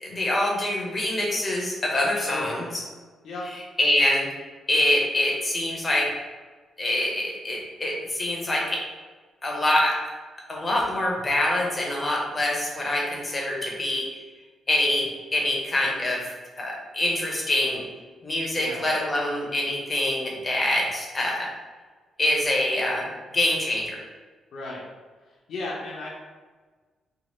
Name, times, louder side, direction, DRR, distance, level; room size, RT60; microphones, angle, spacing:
voice 1, 0.0-2.8 3.8-4.3 4.7-6.1 6.8-8.8 9.4-10.0 10.5-14.1 14.7-17.8 18.2-21.5 22.2-23.1 23.3-24.0, left 1 dB, 20° left, -2 dB, 0.6 m, -25 dB
voice 2, 2.2-2.8 3.2-3.5 18.5-18.9 24.5-24.8 25.5-26.1, left 2 dB, 65° left, -3 dB, 0.5 m, -34 dB
3.1 x 2.3 x 2.9 m, 1.4 s
cardioid pair, 160°, 0 cm